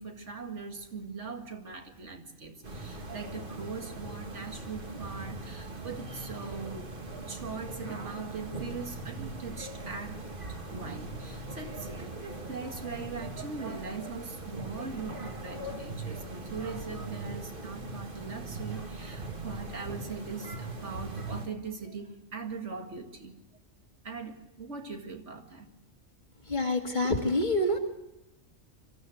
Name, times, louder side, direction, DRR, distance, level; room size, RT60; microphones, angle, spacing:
voice 1, 0.0-6.9 7.2-10.2 10.5-23.4 24.0-25.7, right 4 dB, 70° right, 4 dB, 2.3 m, -41 dB
sound 1, 2.6-21.5, right 2 dB, 45° right, 2.2 m, -40 dB
voice 2, 26.5-27.8, left 1 dB, 40° left, 4 dB, 2.2 m, -27 dB
25.0 x 13.5 x 7.9 m, 0.98 s
omnidirectional pair, 1.3 m